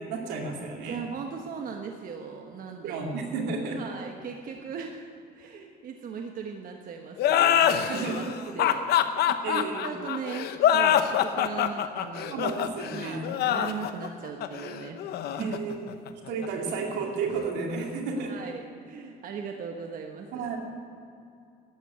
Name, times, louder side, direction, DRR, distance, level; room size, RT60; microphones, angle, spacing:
voice 1, 0.0-1.0 2.8-3.8 7.9-8.3 9.4-9.9 12.3-13.3 15.4-15.9 16.3-18.3 20.3-20.6, right 4 dB, 85° right, 1 dB, 2.7 m, -32 dB
voice 2, 0.8-3.0 3.7-5.0 5.3-12.5 12.9-15.0 15.3-15.6 18.2-20.5, right 6 dB, 55° right, 3 dB, 1.3 m, -38 dB
sound 1, 7.2-16.5, left 10 dB, 70° left, 0.9 m, -25 dB
13.0 x 9.2 x 9.7 m, 2.6 s
cardioid pair, 110°, 17 cm